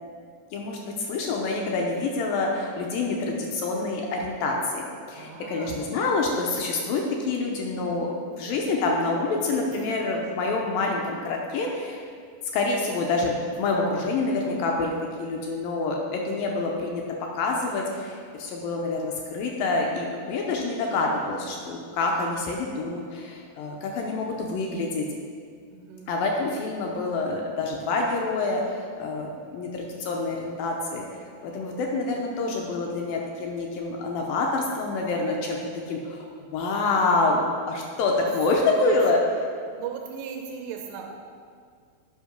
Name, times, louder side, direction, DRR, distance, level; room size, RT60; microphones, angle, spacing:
voice 1, 0.5-12.0 12.5-17.0 17.4-25.1 26.1-31.0 31.4-35.6 35.9-39.2, left 3 dB, 80° left, 0 dB, 2.1 m, -27 dB
voice 2, 5.2-5.9 8.4-8.5 9.7-9.9 25.7-26.1 38.8-39.2 39.8-41.1, right 7 dB, 85° right, 2 dB, 2.8 m, -38 dB
8.3 x 5.5 x 5.1 m, 2.1 s
omnidirectional pair, 4.7 m